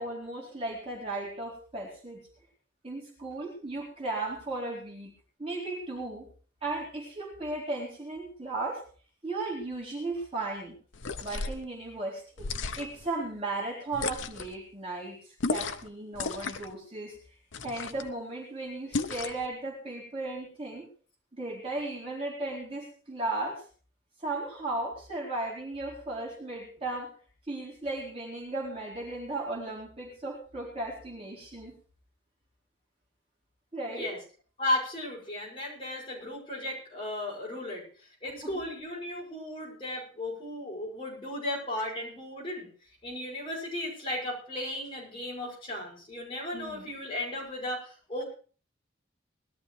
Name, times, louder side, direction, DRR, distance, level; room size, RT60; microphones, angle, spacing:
voice 1, 0.0-2.2 2.8-5.1 5.4-6.3 6.6-8.8 9.2-10.8 11.2-12.5 12.8-17.2 17.6-20.9 21.3-23.6 24.2-27.1 27.5-31.7 33.7-34.1 38.4-38.5 46.5-46.9, right 2 dB, 30° right, -4 dB, 4.2 m, -36 dB
sound 1, 10.9-11.6 12.4-13.1 13.9-14.5 15.4-15.9 16.1-16.7 17.5-18.1 18.9-19.5, left 4 dB, 80° left, 0.8 m, -34 dB
voice 2, 33.9-34.2 34.6-37.8 38.2-42.7 43.0-48.2, left 1 dB, 30° left, -3 dB, 6.3 m, -35 dB
20.5 x 13.0 x 3.3 m, 0.40 s
head